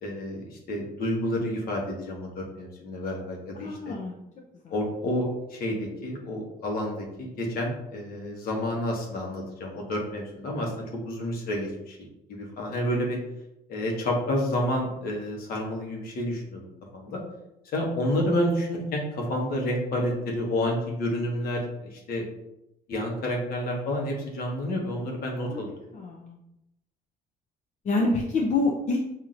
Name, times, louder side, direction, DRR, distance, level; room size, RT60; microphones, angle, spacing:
voice 1, 0.0-3.9 4.7-12.0 12.3-13.2 13.7-17.2 17.7-22.2 22.9-25.8, left 1 dB, 60° left, 0 dB, 1.2 m, -29 dB
voice 2, 3.6-4.1 4.6-4.7 25.5-25.6 25.9-26.4 27.8-29.0, left 2 dB, 45° left, -2 dB, 0.6 m, -26 dB
5.8 x 2.8 x 2.5 m, 0.87 s
cardioid pair, 110°, 17 cm